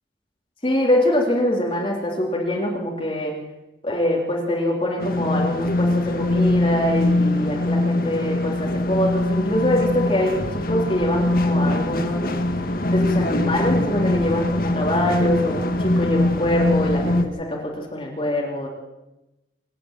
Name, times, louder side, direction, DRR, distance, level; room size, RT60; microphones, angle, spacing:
voice 1, 0.6-3.3 3.8-12.3 12.9-18.7, left 1 dB, 30° left, -3 dB, 3.7 m, -24 dB
sound 1, 5.0-17.2, left 2 dB, 50° left, 1.7 m, -22 dB
27.5 x 10.0 x 9.2 m, 1.0 s
head